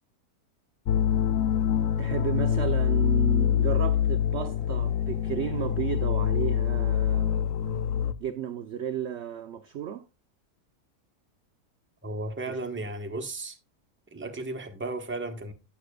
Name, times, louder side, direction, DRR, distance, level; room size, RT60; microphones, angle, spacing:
sound 1, 0.9-8.1, left 9 dB, 65° left, 0.9 m, -25 dB
voice 1, 2.0-7.5 8.2-10.1 12.5-12.6, right 9 dB, 65° right, 0.7 m, -33 dB
voice 2, 12.0-13.6 14.1-15.5, right 2 dB, 10° right, 0.8 m, -34 dB
11.5 x 9.1 x 2.3 m
omnidirectional pair, 1.7 m